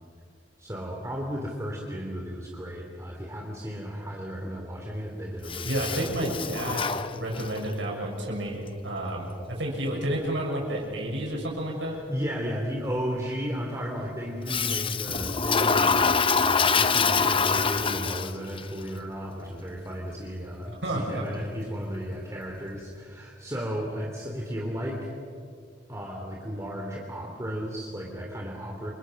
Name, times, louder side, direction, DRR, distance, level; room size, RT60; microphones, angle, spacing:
voice 1, 0.6-6.1 12.1-25.1 25.9-28.9, equal, 15° right, -1 dB, 2.9 m, -34 dB
Toilet flush, 5.5-7.7 14.5-18.6, left 5 dB, 30° left, 0.9 m, -25 dB
voice 2, 5.6-12.0 20.8-21.3, right 1 dB, 80° right, -2 dB, 7.0 m, -30 dB
28.5 x 26.0 x 6.4 m, 2.4 s
head